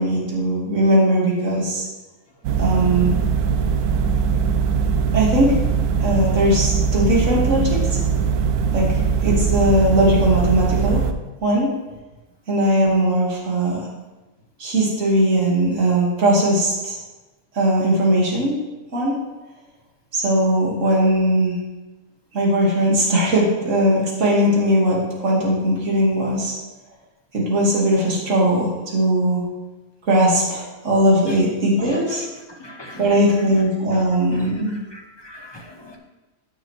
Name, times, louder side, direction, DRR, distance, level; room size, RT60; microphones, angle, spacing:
voice 1, 0.0-1.9 2.6-3.2 5.1-5.6 6.0-7.8 8.7-11.0 11.4-11.7 12.5-13.8 14.6-17.0 17.5-18.6 18.9-19.2 20.1-21.6 22.3-26.5 27.3-29.4 30.1-32.2 33.0-34.7, right 1 dB, 55° right, -4 dB, 2.2 m, -19 dB
sound 1, 2.4-11.1, right 6 dB, 85° right, 1.1 m, -21 dB
voice 2, 31.8-33.2 33.9-34.0 34.3-36.0, left 1 dB, 20° left, 1 dB, 0.9 m, -41 dB
14.0 x 5.5 x 3.1 m, 1.1 s
omnidirectional pair, 1.5 m